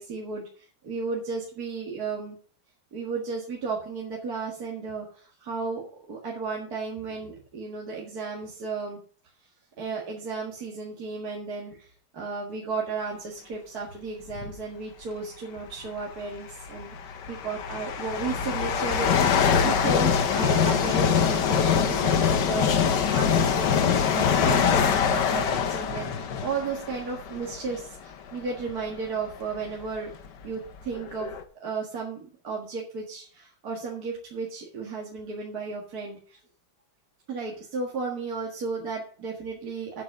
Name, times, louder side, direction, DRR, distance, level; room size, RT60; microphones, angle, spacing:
voice 1, 0.0-2.4 2.9-9.0 9.8-17.0 17.3-30.1 30.4-36.4 37.3-40.0, right 4 dB, 50° right, -2 dB, 2.3 m, -34 dB
sound 1, 14.3-14.6 15.7-15.8 16.6-28.0 28.6-28.7 29.5-29.6 29.8-31.4, left 7 dB, 60° left, 1.6 m, -24 dB
8.6 x 7.4 x 7.0 m, 0.43 s
omnidirectional pair, 2.2 m